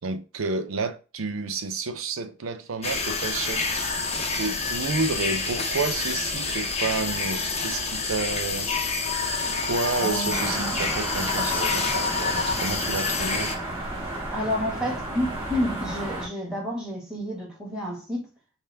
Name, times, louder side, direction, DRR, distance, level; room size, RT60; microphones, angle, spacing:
voice 1, 0.0-3.8 4.3-8.7 9.6-13.5, right 4 dB, 75° right, 0.6 m, -30 dB
sound 1, 2.8-13.6, left 4 dB, 30° left, 0.7 m, -28 dB
voice 2, 10.0-10.8 14.3-18.3, equal, 5° right, 1.6 m, -30 dB
sound 2, 10.3-16.3, right 1 dB, 25° right, 1.9 m, -32 dB
5.5 x 2.2 x 3.4 m
head